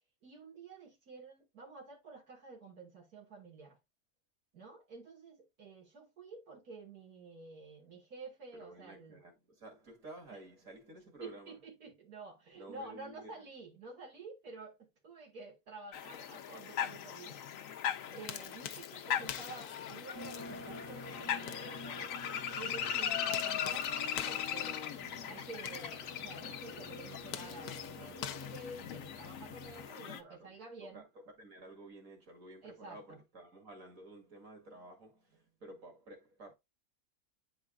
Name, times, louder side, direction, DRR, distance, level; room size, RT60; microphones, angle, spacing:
voice 1, 0.2-3.8 4.5-9.2 11.2-17.8 18.1-22.1 22.5-31.0 32.6-33.2, right 3 dB, 85° right, 2.2 m, -50 dB
voice 2, 8.5-11.6 12.5-13.5 29.7-36.5, right 1 dB, 60° right, 2.6 m, -53 dB
sound 1, 15.9-30.2, left 9 dB, 65° left, 1.1 m, -39 dB
sound 2, 17.9-29.4, left 10 dB, 90° left, 1.2 m, -48 dB
sound 3, 20.1-29.9, left 2 dB, 10° left, 0.9 m, -49 dB
9.9 x 4.8 x 2.4 m
omnidirectional pair, 1.6 m